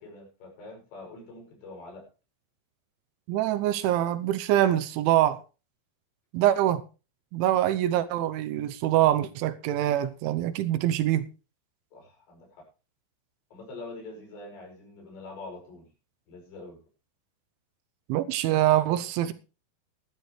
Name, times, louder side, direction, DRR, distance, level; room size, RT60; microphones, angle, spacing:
voice 1, 0.0-2.0 7.7-8.1 8.4-8.6 11.9-12.6 13.5-15.9 16.3-16.8, left 2 dB, 65° left, 7.8 m, -45 dB
voice 2, 3.3-5.4 6.3-6.8 7.3-11.3 18.1-19.3, right 12 dB, 80° right, 3.2 m, -24 dB
16.0 x 12.5 x 3.2 m
omnidirectional pair, 5.6 m